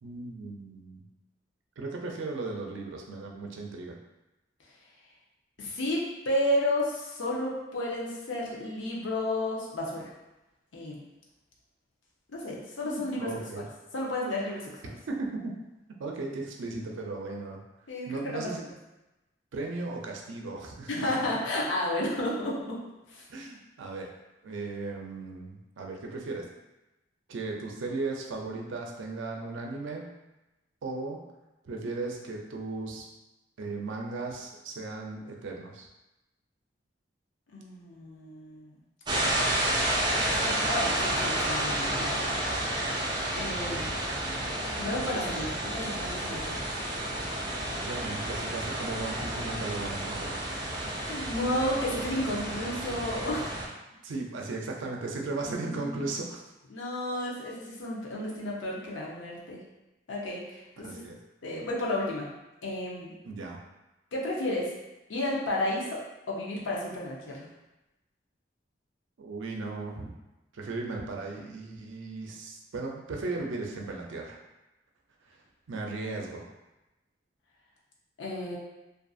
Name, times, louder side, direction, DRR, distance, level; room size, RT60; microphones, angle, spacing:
voice 1, 0.0-1.0 1.8-4.0 12.8-13.6 15.1-15.5 16.0-17.6 18.1-18.7 19.5-21.2 23.3-24.1 24.4-26.5 27.3-30.1 30.8-31.2 31.6-33.1 33.6-35.9 47.8-50.4 54.0-56.4 60.8-61.2 63.2-63.6 69.2-70.1 70.5-74.4 75.7-76.5, right 3 dB, 85° right, 1 dB, 0.4 m, -36 dB
voice 2, 5.6-10.1 10.7-11.0 12.3-13.7 13.9-14.7 17.9-18.5 20.9-22.8 23.1-23.3 37.5-38.8 40.4-42.3 43.3-43.9 44.8-46.5 50.9-53.6 55.4-56.0 56.7-59.6 60.1-61.0 61.4-62.3 62.6-63.1 64.1-64.7 65.1-67.5 78.2-78.6, left 1 dB, 85° left, -4 dB, 0.6 m, -32 dB
sound 1, 39.1-53.7, right 1 dB, 25° right, 0.4 m, -31 dB
2.5 x 2.4 x 2.4 m, 0.99 s
head